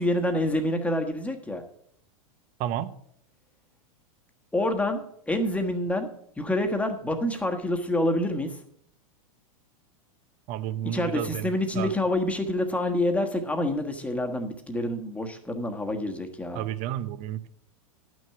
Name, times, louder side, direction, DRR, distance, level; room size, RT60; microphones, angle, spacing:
voice 1, 0.0-1.6 4.5-6.1 6.4-8.6 10.8-16.6, left 1 dB, 5° left, 5 dB, 1.3 m, -27 dB
voice 2, 2.6-2.9 10.5-11.5 11.7-11.9 16.5-17.5, right 12 dB, 45° right, 14 dB, 0.7 m, -31 dB
11.0 x 6.2 x 5.8 m, 0.68 s
hypercardioid pair, 115°, 18 cm